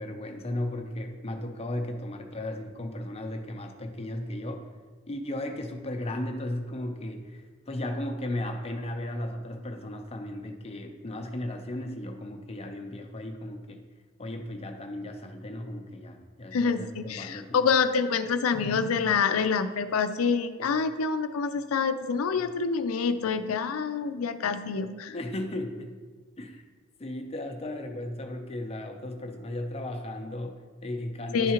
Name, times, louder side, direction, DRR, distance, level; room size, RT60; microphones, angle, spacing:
voice 1, 0.0-4.7 5.1-13.8 14.2-17.6 25.1-25.9 26.4-26.6 27.0-31.5, left 1 dB, 30° left, 5 dB, 0.6 m, -35 dB
voice 2, 16.5-25.1 31.3-31.5, left 5 dB, 85° left, 10 dB, 0.4 m, -27 dB
11.0 x 3.7 x 2.9 m, 1.4 s
head